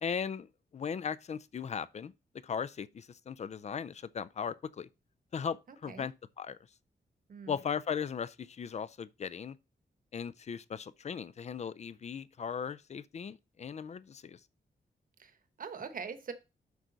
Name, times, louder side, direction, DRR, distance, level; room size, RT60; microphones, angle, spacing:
voice 1, 0.0-0.5 0.7-2.1 2.4-4.9 5.3-5.6 5.8-6.6 7.5-9.6 10.1-14.4, left 7 dB, 40° left, 0.4 m, -37 dB
voice 2, 5.7-6.1 7.3-7.5 15.2-16.3, right 5 dB, 50° right, 1.1 m, -43 dB
8.1 x 6.2 x 3.9 m
wide cardioid pair, 175°, 18 cm